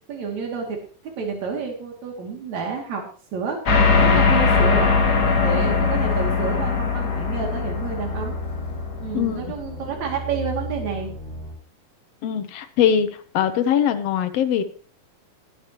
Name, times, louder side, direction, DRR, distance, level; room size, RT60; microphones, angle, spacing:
voice 1, 0.1-0.8 1.0-3.0 3.3-3.6 4.0-8.3 9.0-11.1, right 5 dB, 65° right, 1 dB, 3.9 m, -29 dB
sound 1, 3.7-9.5, left 5 dB, 45° left, 1.5 m, -20 dB
sound 2, 5.6-11.5, right 1 dB, 30° right, 4.9 m, -36 dB
voice 2, 12.2-14.6, left 9 dB, 65° left, 9 dB, 1.9 m, -21 dB
20.5 x 8.6 x 3.0 m, 0.42 s
omnidirectional pair, 3.5 m